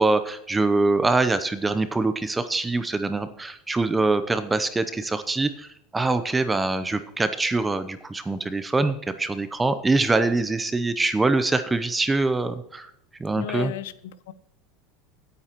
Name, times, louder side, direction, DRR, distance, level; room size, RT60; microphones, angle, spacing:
voice 1, 0.0-12.9 13.2-13.7, right 3 dB, 10° right, 11 dB, 0.6 m, -24 dB
voice 2, 13.4-14.3, left 13 dB, 85° left, 14 dB, 0.8 m, -34 dB
17.0 x 9.1 x 3.0 m, 0.73 s
supercardioid pair, 125°, 0 cm